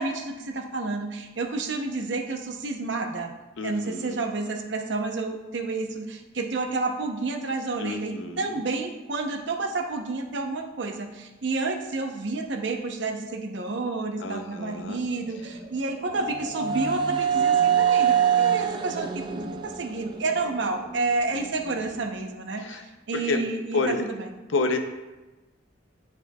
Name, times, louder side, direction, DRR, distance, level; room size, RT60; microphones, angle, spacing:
voice 1, 0.0-3.3 3.6-19.2 19.6-24.2, right 3 dB, 65° right, 4 dB, 0.7 m, -30 dB
voice 2, 3.6-4.2 7.8-8.6 14.2-15.0 21.3-22.0 22.6-22.8 23.1-23.4 23.7-24.1 24.5-24.8, left 3 dB, 85° left, 6 dB, 0.6 m, -30 dB
sound 1, 15.3-21.2, right 8 dB, 25° right, 0.4 m, -25 dB
10.0 x 4.4 x 2.3 m, 1.1 s
head